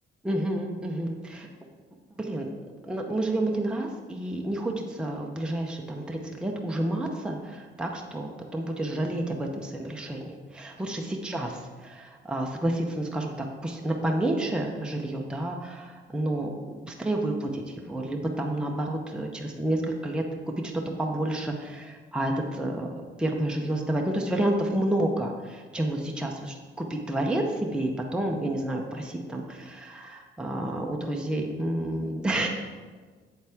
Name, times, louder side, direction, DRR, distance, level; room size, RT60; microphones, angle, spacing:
voice 1, 0.2-1.5 2.2-2.5 2.8-20.2 20.6-32.5, right 1 dB, 5° right, 0 dB, 0.8 m, -30 dB
7.9 x 7.2 x 3.6 m, 1.5 s
cardioid pair, 90°, 20 cm